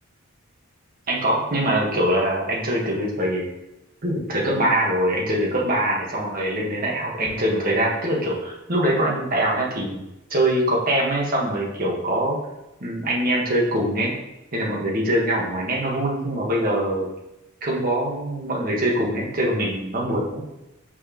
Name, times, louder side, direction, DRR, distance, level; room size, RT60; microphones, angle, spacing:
voice 1, 1.1-3.5 4.0-10.0 10.3-12.4 12.8-14.1 14.5-17.1 17.6-20.4, right 1 dB, 45° right, -3 dB, 1.4 m, -23 dB
6.9 x 4.6 x 3.0 m, 0.92 s
head